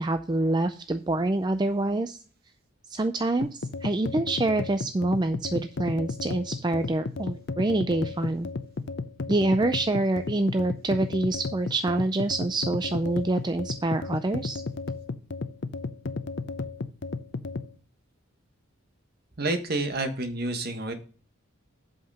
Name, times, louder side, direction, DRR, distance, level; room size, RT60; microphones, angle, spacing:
voice 1, 0.0-2.2 2.9-8.5 9.3-14.6, right 2 dB, 20° right, 9 dB, 0.4 m, -26 dB
sound 1, 3.4-17.7, left 3 dB, 55° left, 0.6 m, -34 dB
voice 2, 19.4-20.9, right 2 dB, 45° right, 7 dB, 1.4 m, -29 dB
8.1 x 5.8 x 5.5 m, 0.40 s
head